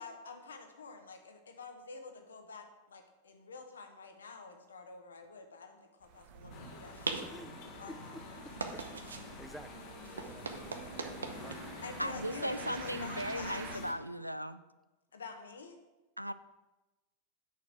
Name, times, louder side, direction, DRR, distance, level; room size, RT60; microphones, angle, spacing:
voice 1, 0.0-8.4 11.8-13.8 15.1-15.8, left 4 dB, 70° left, 5 dB, 1.2 m, -48 dB
sound 1, 6.0-13.8, right 7 dB, 45° right, 0.9 m, -50 dB
sound 2, 6.3-13.9, right 4 dB, 70° right, 0.8 m, -44 dB
sound 3, 6.5-13.9, left 4 dB, 40° left, 1.2 m, -48 dB
voice 2, 7.2-8.2 8.7-9.0 9.3-9.7 10.2-11.7, equal, ahead, 10 dB, 0.5 m, -52 dB
voice 3, 12.0-14.6 16.2-16.3, equal, 90° right, 13 dB, 0.4 m, -37 dB
9.3 x 6.5 x 4.7 m, 1.1 s
figure-of-eight pair, 90°, 0 cm